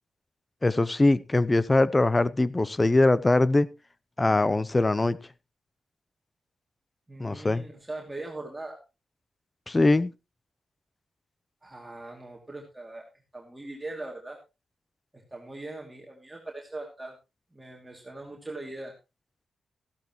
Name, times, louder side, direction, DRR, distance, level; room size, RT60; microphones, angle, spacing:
voice 1, 0.6-3.7 4.2-5.2 7.2-7.6 9.7-10.1, left 2 dB, 20° left, 0.7 m, -22 dB
voice 2, 7.1-8.8 11.6-13.1 13.3-14.4 15.1-17.2 17.5-18.9, right 2 dB, 15° right, 2.6 m, -40 dB
14.5 x 12.0 x 3.1 m
wide cardioid pair, 115°, 0 cm